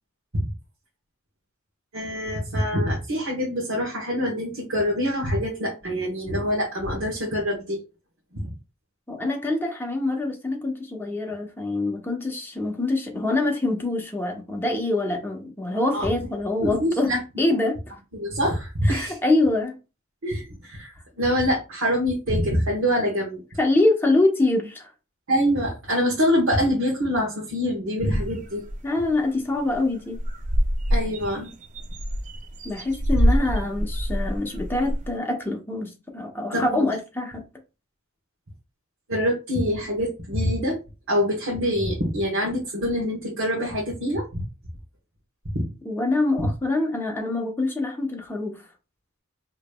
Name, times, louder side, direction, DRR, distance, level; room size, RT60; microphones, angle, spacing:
voice 1, 1.9-7.8 8.3-8.5 15.9-16.1 16.6-17.2 18.1-19.2 20.2-20.9 21.2-23.4 25.3-28.6 30.9-31.5 36.5-36.8 39.1-40.8 41.1-44.4 45.5-45.7, equal, 65° right, 1.1 m, -25 dB
voice 2, 9.1-17.1 17.4-17.8 18.8-19.8 23.6-24.9 28.8-30.2 32.6-37.4 45.8-48.6, left 2 dB, 10° left, 0.8 m, -25 dB
sound 1, 28.0-28.8 29.2-29.3 29.6-29.8 30.1-35.1, equal, 35° right, 0.5 m, -25 dB
4.9 x 3.0 x 2.3 m
head